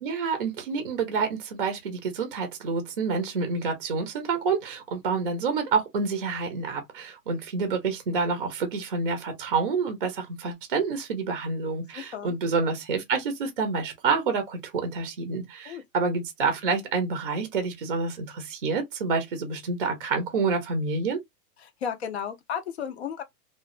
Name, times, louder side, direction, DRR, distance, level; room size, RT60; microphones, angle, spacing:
voice 1, 0.0-21.2, right 4 dB, 35° right, 0.5 m, -28 dB
voice 2, 11.9-12.4 15.6-15.8 21.6-23.2, left 8 dB, 45° left, 0.5 m, -34 dB
3.0 x 2.2 x 2.3 m
hypercardioid pair, 175°, 48 cm